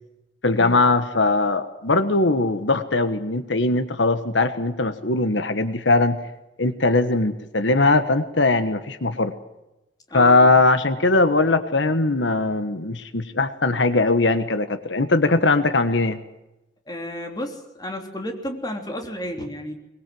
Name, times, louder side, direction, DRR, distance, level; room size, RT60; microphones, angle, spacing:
voice 1, 0.4-6.2 6.6-9.3 10.1-16.2, left 3 dB, 90° left, 11 dB, 1.4 m, -20 dB
voice 2, 10.1-10.5 16.9-19.7, equal, 20° left, 3 dB, 3.3 m, -32 dB
22.5 x 21.5 x 7.8 m, 0.95 s
head